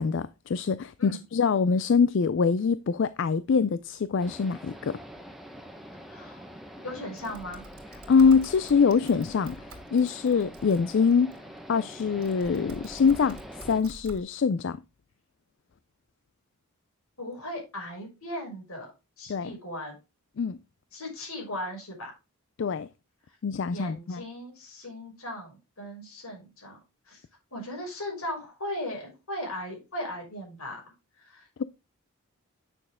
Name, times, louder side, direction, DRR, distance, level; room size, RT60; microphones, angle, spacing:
voice 1, 0.0-5.0 8.1-9.6 9.9-11.3 11.7-13.4 13.6-14.8 19.3-19.5 20.4-20.6 22.6-22.9 23.4-24.2, left 5 dB, 55° left, 0.4 m, -24 dB
sound 1, 4.2-13.8, equal, ahead, 1.1 m, -45 dB
voice 2, 6.1-6.4 6.8-7.6 17.2-18.9 19.2-20.0 20.9-22.1 23.7-26.8 27.1-27.2 27.5-30.8 31.2-31.5, left 1 dB, 80° left, 5.7 m, -37 dB
Typing, 7.2-11.4 12.0-14.2, right 1 dB, 85° right, 2.5 m, -48 dB
9.0 x 6.4 x 3.6 m
head